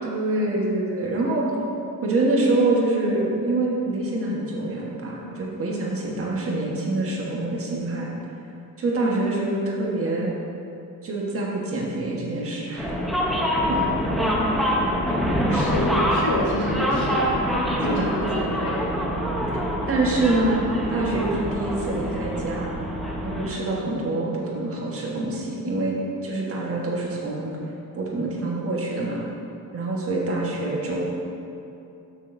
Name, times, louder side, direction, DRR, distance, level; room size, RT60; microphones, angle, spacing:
voice 1, 0.0-1.5 2.0-8.1 8.8-10.3 11.0-12.9 13.7-13.8 15.0-15.7 17.8-18.2 19.9-20.6 20.9-22.7 23.2-27.5 28.0-29.3 29.7-31.0, right 2 dB, 40° right, -3 dB, 1.4 m, -26 dB
sound 1, 12.8-23.5, equal, ahead, 0.8 m, -25 dB
voice 2, 15.4-17.3 17.6-18.9, left 1 dB, 85° left, -3 dB, 1.7 m, -28 dB
13.0 x 6.5 x 2.7 m, 2.8 s
cardioid pair, 170°, 37 cm